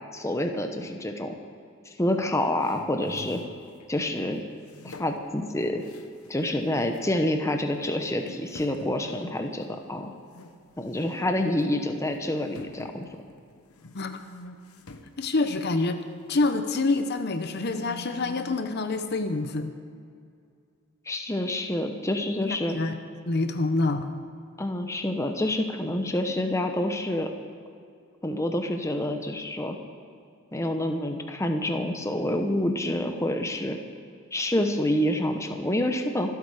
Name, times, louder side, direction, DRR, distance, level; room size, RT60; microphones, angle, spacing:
voice 1, 0.1-1.3 1.9-3.4 3.9-4.4 4.8-5.8 6.3-10.1 10.8-13.1 21.1-22.8 24.6-27.3 28.2-29.8 30.5-33.8 34.3-36.4, left 1 dB, 15° left, 5 dB, 0.8 m, -27 dB
sound 1, 2.6-4.2 4.6-6.4 6.7-7.1 7.7-7.8 8.3-10.6 10.9-11.2 11.6-11.7 12.5-16.5 17.0-18.7, left 2 dB, 85° left, 1.0 m, -46 dB
voice 2, 15.2-16.0 16.3-19.7 22.4-23.0 23.3-24.1, left 3 dB, 50° left, 8 dB, 0.8 m, -27 dB
25.0 x 8.4 x 4.9 m, 2.3 s
head